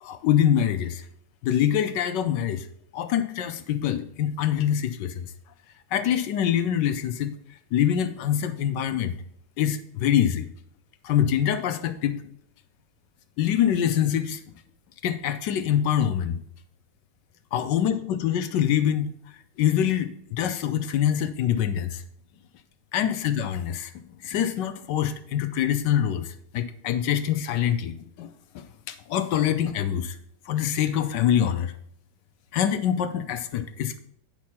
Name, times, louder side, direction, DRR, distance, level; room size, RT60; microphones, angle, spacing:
voice 1, 0.0-1.1 1.4-2.7 2.9-5.3 5.9-7.3 7.7-9.1 9.6-10.5 11.0-12.2 13.4-14.4 15.0-16.4 17.5-19.1 19.6-22.0 22.9-23.9 24.2-28.3 28.5-30.2 30.5-31.7 32.5-34.0, left 10 dB, 75° left, 9 dB, 1.0 m, -25 dB
9.5 x 6.0 x 4.2 m, 0.71 s
omnidirectional pair, 2.4 m